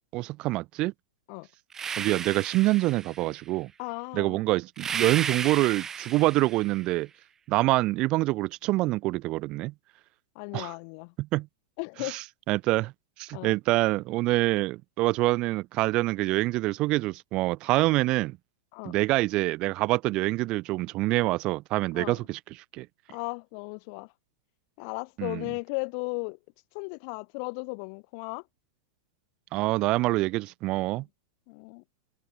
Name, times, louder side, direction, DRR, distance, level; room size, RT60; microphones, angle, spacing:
voice 1, 0.1-0.9 2.0-3.7 4.1-7.1 7.5-9.7 10.5-10.7 11.2-11.5 12.0-12.9 13.2-18.4 18.8-22.9 25.2-25.4 29.5-31.0, right 19 dB, 40° right, 1.6 m, -26 dB
sound 1, 1.7-3.4 4.8-6.8, right 7 dB, 20° right, 6.6 m, -34 dB
voice 2, 3.8-4.4 10.4-11.1 11.8-12.2 13.3-13.6 18.7-18.9 21.9-22.2 23.1-24.1 24.8-26.4 26.7-28.4 31.5-31.8, left 40 dB or more, 50° left, 7.1 m, -36 dB
hypercardioid pair, 100°, 2 cm